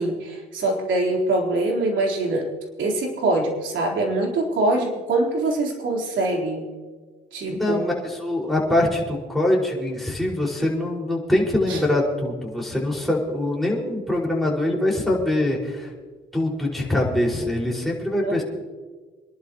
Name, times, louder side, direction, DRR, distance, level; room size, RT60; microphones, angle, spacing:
voice 1, 0.0-2.5 2.8-6.7 7.3-7.9 11.7-11.8 18.2-18.4, right 2 dB, 70° right, 0 dB, 3.9 m, -24 dB
voice 2, 7.5-15.9 16.3-18.4, left 1 dB, ahead, -4 dB, 5.3 m, -23 dB
27.5 x 11.5 x 3.1 m, 1.4 s
cardioid pair, 90°, 20 cm